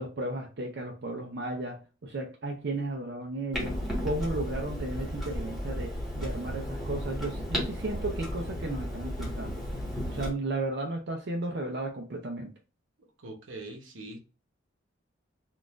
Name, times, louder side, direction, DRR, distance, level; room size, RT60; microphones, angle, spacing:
voice 1, 0.0-3.7 4.0-9.6 10.1-12.5, right 2 dB, 60° right, 0.5 m, -34 dB
Clock, 3.5-10.3, equal, ahead, 1.3 m, -34 dB
voice 2, 13.2-14.2, right 2 dB, 85° right, 0.9 m, -42 dB
3.8 x 2.4 x 2.4 m
head